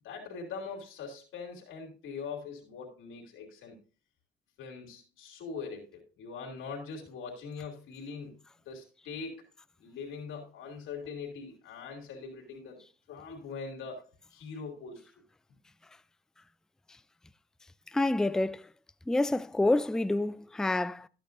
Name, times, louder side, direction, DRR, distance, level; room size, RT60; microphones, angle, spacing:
voice 1, 0.0-3.7 4.6-8.4 8.6-9.4 9.8-12.8 13.1-15.1, left 5 dB, 85° left, 2.9 m, -42 dB
voice 2, 17.9-18.7 19.1-21.1, left 2 dB, 5° left, 0.4 m, -28 dB
13.0 x 8.8 x 2.6 m
cardioid pair, 90°, 20 cm